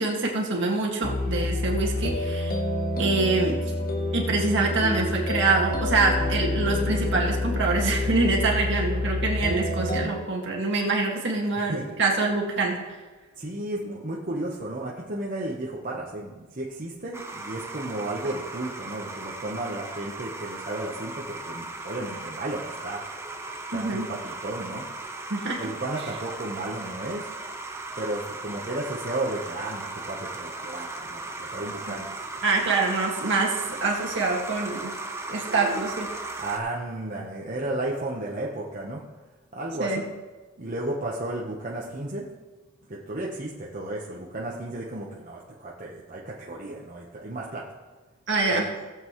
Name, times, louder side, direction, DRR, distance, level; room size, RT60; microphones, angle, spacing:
voice 1, 0.0-2.6 3.0-3.7 4.1-12.8 23.7-24.1 25.3-25.6 32.4-34.9 35.3-36.1 39.8-40.0 48.3-48.7, right 3 dB, 60° right, -1 dB, 2.0 m, -25 dB
sound 1, 1.0-10.1, left 2 dB, 45° left, 1.2 m, -27 dB
voice 2, 13.4-23.0 23.7-24.9 25.6-27.3 27.9-32.4 35.4-35.8 36.4-39.0 39.5-40.1 40.6-42.3 42.9-47.7 48.5-48.6, right 2 dB, 40° right, -4 dB, 1.1 m, -33 dB
sound 2, 17.1-36.6, right 2 dB, 15° right, 0.8 m, -37 dB
18.0 x 7.8 x 3.1 m, 1.3 s
head